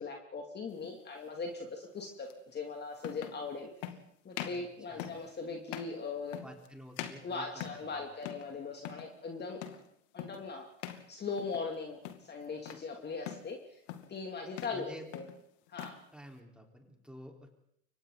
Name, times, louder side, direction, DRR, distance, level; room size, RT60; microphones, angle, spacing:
voice 1, 0.0-3.7 4.2-6.4 7.2-9.8 10.1-10.7 11.1-13.8 14.1-15.3 15.7-16.0, left 4 dB, 25° left, 2 dB, 2.8 m, -40 dB
sound 1, 0.8-1.0 2.3-2.4 3.0-3.4 3.8-4.0 4.3-4.7 5.0-5.3 5.7-6.0 6.3-6.7 7.0-7.9 8.2-8.5 8.8-9.1 9.6-9.9 10.2-10.5 10.8-11.1 11.4-11.7 12.0-12.9 13.3-13.5 13.9-14.2 14.5-14.8 15.1-16.0, left 11 dB, 70° left, 2.6 m, -43 dB
voice 2, 6.4-7.6 7.9-8.0 14.7-15.1 16.1-17.5, equal, ahead, 1 dB, 4.3 m, -50 dB
29.5 x 24.5 x 4.1 m, 0.73 s
supercardioid pair, 115°, 40 cm